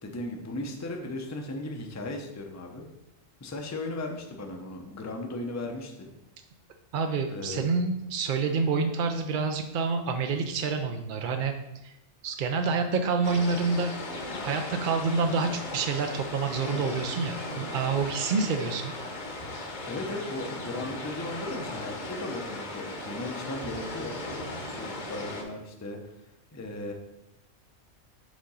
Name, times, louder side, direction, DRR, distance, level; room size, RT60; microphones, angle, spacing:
voice 1, 0.0-2.9 3.4-6.1 7.3-7.8 19.9-24.2 24.6-26.9, left 2 dB, 20° left, 2 dB, 0.4 m, -37 dB
voice 2, 6.9-11.5 11.8-11.9 12.2-13.9 14.4-18.9, right 4 dB, 65° right, 5 dB, 0.5 m, -28 dB
sound 1, 13.2-25.4, left 2 dB, 40° left, 0.9 m, -37 dB
5.1 x 3.7 x 5.4 m, 0.89 s
omnidirectional pair, 1.3 m